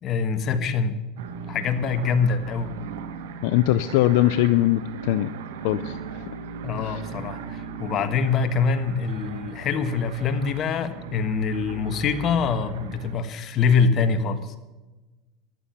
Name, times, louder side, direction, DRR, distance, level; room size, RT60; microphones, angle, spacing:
voice 1, 0.0-1.0 1.5-2.7 6.6-14.6, left 5 dB, 45° left, 10 dB, 1.5 m, -24 dB
sound 1, 1.2-13.1, right 5 dB, 85° right, 1.3 m, -37 dB
voice 2, 3.4-5.3 5.6-6.3 6.8-7.0, left 15 dB, 70° left, 13 dB, 0.5 m, -22 dB
14.0 x 11.5 x 5.8 m, 1.1 s
supercardioid pair, 105°, 0 cm